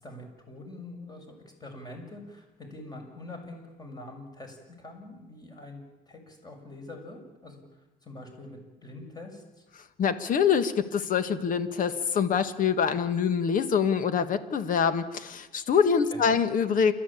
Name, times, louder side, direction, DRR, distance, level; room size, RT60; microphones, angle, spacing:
voice 1, 0.0-9.6 16.1-16.4, left 2 dB, 25° left, 3 dB, 6.8 m, -45 dB
voice 2, 10.0-16.9, left 7 dB, 50° left, 11 dB, 1.8 m, -25 dB
29.0 x 13.0 x 8.7 m, 1.1 s
cardioid pair, 110°, 17 cm